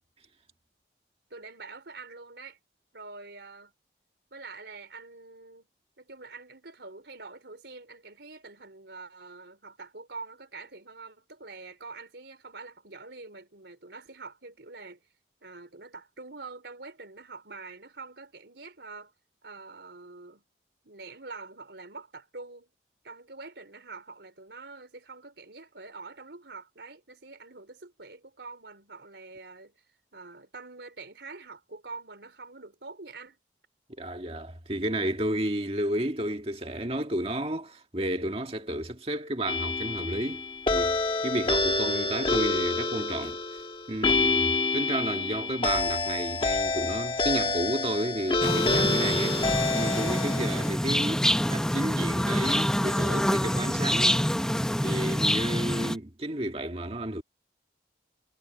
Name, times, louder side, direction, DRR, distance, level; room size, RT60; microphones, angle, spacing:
voice 1, 1.3-2.6 2.9-3.7 4.3-5.7 6.0-15.0 15.4-19.1 19.4-20.4 20.8-22.7 23.0-29.7 30.1-33.4, right 3 dB, 80° right, 3.7 m, -45 dB
voice 2, 34.0-41.0 41.2-43.6 43.9-49.4 49.7-54.2 54.8-57.2, right 1 dB, 35° right, 1.9 m, -32 dB
sound 1, 39.5-50.7, left 3 dB, 30° left, 1.5 m, -27 dB
sound 2, 48.4-56.0, equal, 5° left, 0.8 m, -26 dB
head